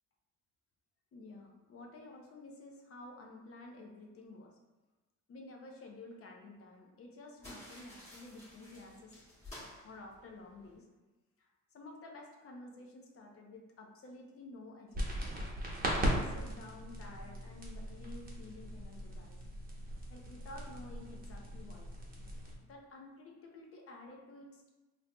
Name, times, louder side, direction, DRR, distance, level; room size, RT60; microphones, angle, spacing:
voice 1, 1.1-4.6 5.3-9.1 9.8-10.9 11.4-15.2 15.9-19.4 20.1-21.9 22.6-24.7, left 2 dB, 50° left, 1 dB, 0.7 m, -51 dB
sound 1, 7.4-10.8, left 1 dB, 20° left, 1.5 m, -53 dB
sound 2, 14.9-22.5, right 1 dB, 30° right, 0.9 m, -38 dB
4.4 x 2.5 x 2.2 m, 1.2 s
cardioid pair, 90°, 30 cm